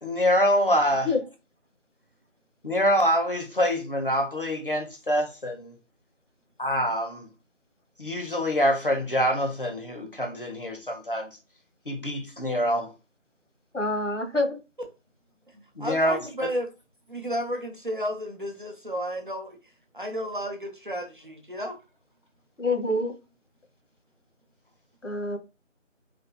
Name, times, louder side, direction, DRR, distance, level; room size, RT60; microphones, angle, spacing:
voice 1, 0.0-1.1 2.6-5.7 6.6-7.3 8.0-11.3 11.9-12.9 15.8-16.5, equal, 45° left, 0.9 m, -25 dB
voice 2, 13.7-14.6 22.6-23.1 25.0-25.4, left 2 dB, 70° left, 1.3 m, -26 dB
voice 3, 15.8-16.7 17.1-19.6 19.9-21.8, equal, 40° right, 0.7 m, -32 dB
4.1 x 2.6 x 2.7 m
figure-of-eight pair, 175°, 38 cm